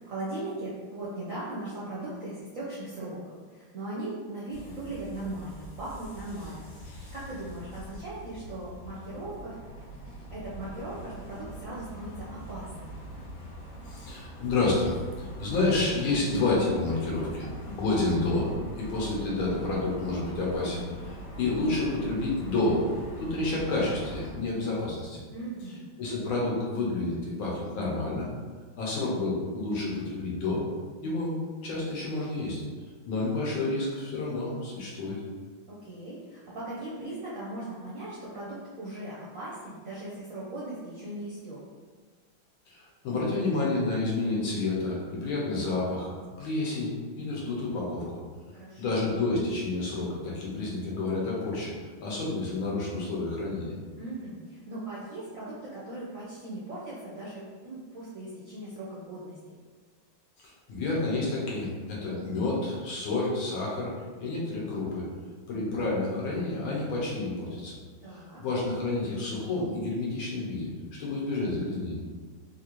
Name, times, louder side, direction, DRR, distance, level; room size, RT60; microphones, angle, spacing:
voice 1, 0.0-9.6 10.3-13.0 25.3-25.8 35.7-41.6 48.5-49.1 54.0-59.6 68.0-68.4, right 1 dB, 65° right, -8 dB, 0.8 m, -39 dB
sound 1, 4.5-24.3, right 1 dB, 55° left, 1.1 m, -43 dB
voice 2, 13.9-18.5 18.8-22.8 23.2-25.2 26.0-28.3 28.8-30.6 31.0-32.6 33.1-35.2 42.7-46.1 46.4-48.2 48.8-51.7 52.0-53.7 60.4-63.9 64.2-65.1 65.5-67.8 68.1-70.7 71.0-72.0, left 2 dB, 80° left, -5 dB, 1.7 m, -29 dB
4.2 x 2.5 x 3.0 m, 1.5 s
omnidirectional pair, 2.2 m